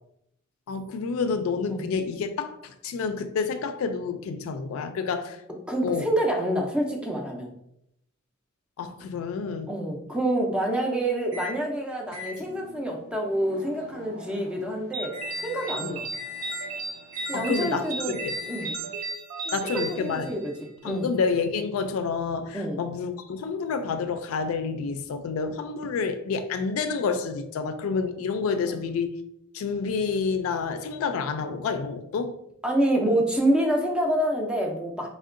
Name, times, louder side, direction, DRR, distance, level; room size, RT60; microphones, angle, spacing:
voice 1, 0.7-5.4 5.8-6.0 8.8-9.7 15.8-16.0 17.3-18.4 19.5-20.3 20.8-29.1 29.5-32.4, left 5 dB, 80° left, 0.3 m, -29 dB
voice 2, 5.7-7.5 9.7-16.1 17.3-18.2 18.5-18.9 19.5-21.1 22.5-22.8 28.7-28.8 32.6-35.1, right 1 dB, 5° right, 0.4 m, -27 dB
Microwave oven, 11.3-11.6 12.1-18.9, left 5 dB, 60° right, 1.2 m, -41 dB
sound 1, 14.9-20.7, right 4 dB, 80° right, 0.3 m, -35 dB
3.6 x 2.1 x 2.4 m
head